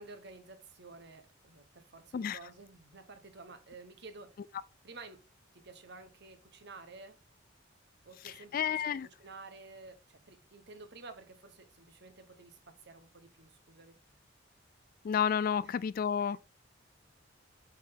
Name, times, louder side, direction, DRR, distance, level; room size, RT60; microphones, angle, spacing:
voice 1, 0.0-4.4 4.8-5.2 5.5-7.2 8.0-14.0 15.6-15.8 16.3-16.4, right 3 dB, 60° right, 1.2 m, -52 dB
voice 2, 8.2-9.1 15.0-16.4, left 7 dB, 45° left, 0.3 m, -31 dB
7.1 x 4.6 x 3.8 m
head